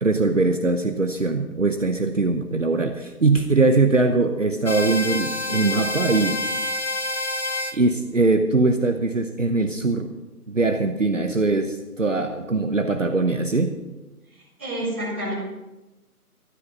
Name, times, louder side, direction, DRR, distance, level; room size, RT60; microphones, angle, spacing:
voice 1, 0.0-6.4 7.7-10.1 10.5-13.7, right 3 dB, 55° right, 6 dB, 1.0 m, -21 dB
sound 1, 4.7-7.8, left 1 dB, 45° left, 0.8 m, -27 dB
voice 2, 14.6-15.3, right 1 dB, 10° right, -12 dB, 2.5 m, -28 dB
13.0 x 12.0 x 5.4 m, 1.1 s
figure-of-eight pair, 180°, 46 cm